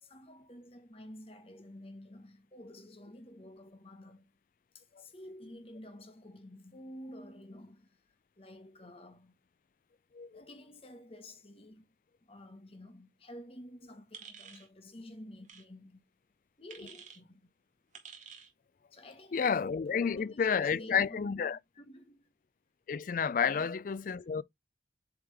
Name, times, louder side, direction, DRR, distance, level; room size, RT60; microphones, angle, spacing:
voice 1, 0.0-4.3 4.7-8.0 8.4-9.3 10.3-11.9 12.2-16.0 16.6-17.5 18.9-19.6 20.0-21.5 21.7-22.3 23.4-23.7, left 1 dB, 35° left, 1.4 m, -50 dB
sound 1, 14.1-14.7 15.4-15.6 16.7-17.2 17.9-18.5, right 6 dB, 45° right, 1.5 m, -50 dB
voice 2, 19.3-21.6 22.9-24.4, left 6 dB, 50° left, 0.4 m, -30 dB
8.0 x 3.6 x 3.4 m
head